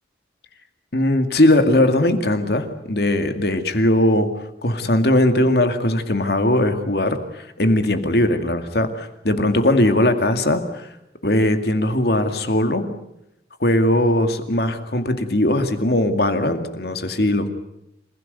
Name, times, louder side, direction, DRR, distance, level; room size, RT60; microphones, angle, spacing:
voice 1, 0.9-4.3 4.6-10.8 11.2-12.9 13.6-17.5, left 1 dB, 60° left, 7 dB, 2.2 m, -19 dB
27.5 x 16.0 x 9.3 m, 0.84 s
head